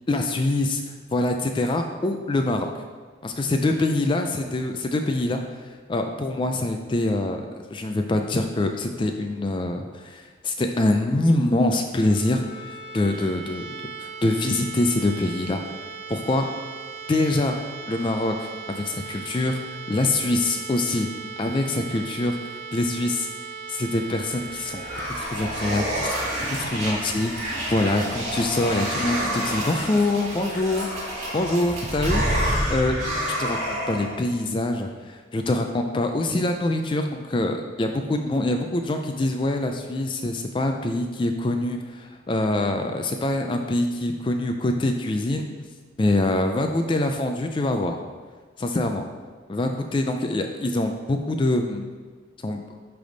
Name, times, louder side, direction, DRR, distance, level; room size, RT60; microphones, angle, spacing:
voice 1, 0.1-0.8 1.1-2.7 3.2-5.4 5.9-13.7 14.0-15.6 16.1-16.5 17.1-17.6 17.9-19.6 19.9-21.1 21.4-23.3 23.7-26.2 26.5-33.0 33.4-45.5 46.0-48.0 48.6-49.1 49.5-51.9 52.4-52.6, left 2 dB, 25° left, 5 dB, 0.3 m, -25 dB
sound 1, 11.9-27.7, right 5 dB, 65° right, 1.2 m, -39 dB
sound 2, 24.2-34.2, equal, 40° right, 2.0 m, -28 dB
10.0 x 3.4 x 3.9 m, 1.5 s
head